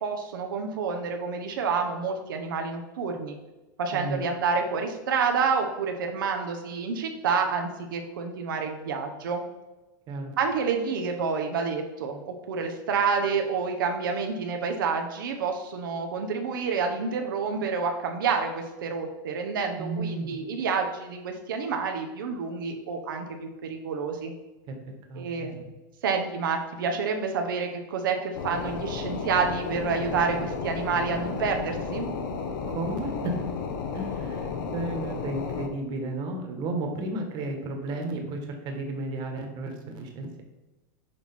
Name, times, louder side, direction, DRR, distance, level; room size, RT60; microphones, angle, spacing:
voice 1, 0.0-3.4 3.8-9.4 10.4-24.3 25.2-25.6 26.0-32.1, right 5 dB, 85° right, 4 dB, 0.9 m, -28 dB
voice 2, 3.9-4.2 10.1-10.4 19.8-20.4 24.7-24.8 25.1-25.7 32.7-33.4 33.9-38.4 38.6-40.4, right 2 dB, 40° right, 3 dB, 1.5 m, -33 dB
sound 1, 28.3-35.7, left 5 dB, 75° left, 1.1 m, -33 dB
6.4 x 4.4 x 4.3 m, 1.1 s
supercardioid pair, 135°, 11 cm